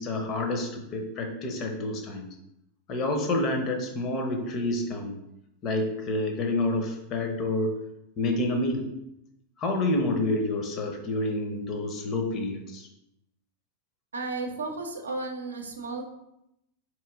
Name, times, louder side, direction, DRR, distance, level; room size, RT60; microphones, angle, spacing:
voice 1, 0.0-2.3 2.9-5.2 5.6-7.8 8.2-8.9 9.6-12.9, left 2 dB, 35° left, 4 dB, 0.7 m, -28 dB
voice 2, 14.1-16.0, right 3 dB, 70° right, 4 dB, 0.6 m, -33 dB
4.3 x 3.1 x 3.6 m, 0.83 s
figure-of-eight pair, 90°, 0 cm